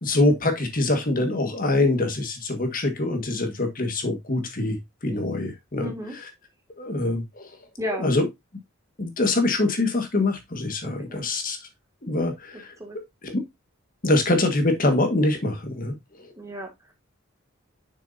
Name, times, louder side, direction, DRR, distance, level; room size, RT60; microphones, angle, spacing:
voice 1, 0.0-4.8 5.0-5.9 6.8-7.5 8.0-8.2 9.0-11.6 12.1-12.7 13.2-13.4 14.0-15.9, left 2 dB, 45° left, 6 dB, 1.6 m, -24 dB
voice 2, 5.8-6.2 7.8-8.2 10.8-11.3 12.5-13.0 16.4-16.9, equal, 15° right, 2 dB, 2.0 m, -34 dB
6.6 x 6.5 x 2.6 m, 0.18 s
head